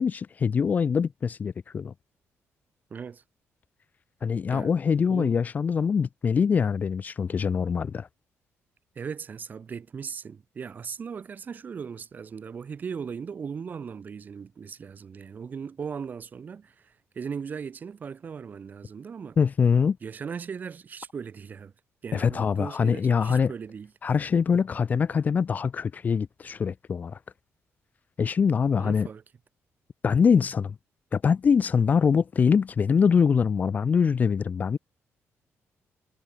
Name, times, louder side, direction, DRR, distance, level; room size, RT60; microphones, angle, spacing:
voice 1, 0.0-1.9 4.2-8.1 19.4-20.0 22.1-23.5 24.0-27.2 28.2-29.1 30.0-30.7 31.1-34.8, left 6 dB, 35° left, 0.8 m, -23 dB
voice 2, 2.9-3.2 4.5-4.7 5.1-5.4 9.0-19.4 20.0-21.7 22.0-23.9 28.8-29.2, right 6 dB, 35° right, 3.7 m, -38 dB
cardioid pair, 165°, 5 cm